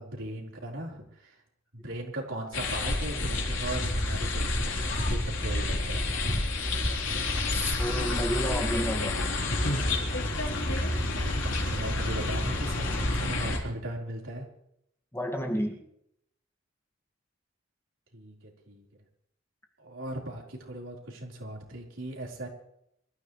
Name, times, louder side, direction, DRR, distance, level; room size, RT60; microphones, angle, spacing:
voice 1, 0.0-1.4 1.7-6.1 10.8-14.5 18.1-18.3 18.7-18.8 19.8-22.5, right 1 dB, 80° right, -1 dB, 4.4 m, -38 dB
sound 1, 2.5-13.6, left 2 dB, 70° left, 4.0 m, -29 dB
voice 2, 7.5-9.2 15.1-15.8, equal, 15° left, 2 dB, 2.0 m, -31 dB
25.5 x 14.0 x 3.3 m, 0.76 s
head